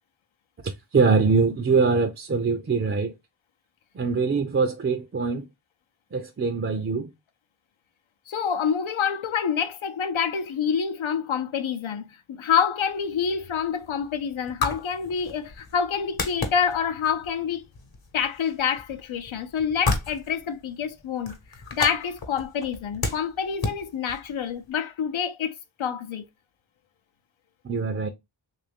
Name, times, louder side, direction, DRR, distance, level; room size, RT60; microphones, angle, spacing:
voice 1, 0.6-3.1 3.9-5.5 6.1-7.1 27.6-28.1, right 4 dB, 30° right, 0.4 m, -23 dB
voice 2, 8.3-17.6 18.1-21.4 21.7-26.2, left 7 dB, 80° left, 0.7 m, -27 dB
sound 1, 12.9-24.7, left 3 dB, 50° left, 1.0 m, -34 dB
3.1 x 2.5 x 3.4 m
wide cardioid pair, 90°, 48 cm